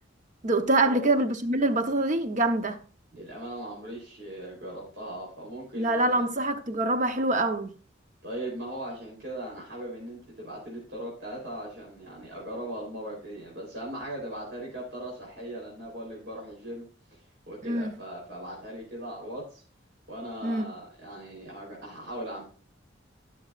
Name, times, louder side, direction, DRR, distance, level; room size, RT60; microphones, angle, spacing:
voice 1, 0.4-2.8 5.8-7.7 17.6-18.0 20.4-20.7, right 2 dB, 40° right, 0.9 m, -25 dB
voice 2, 3.1-6.3 8.2-16.8 17.1-17.2 17.5-19.6 20.1-22.4, right 1 dB, 65° right, 3.7 m, -39 dB
14.5 x 6.3 x 2.5 m
head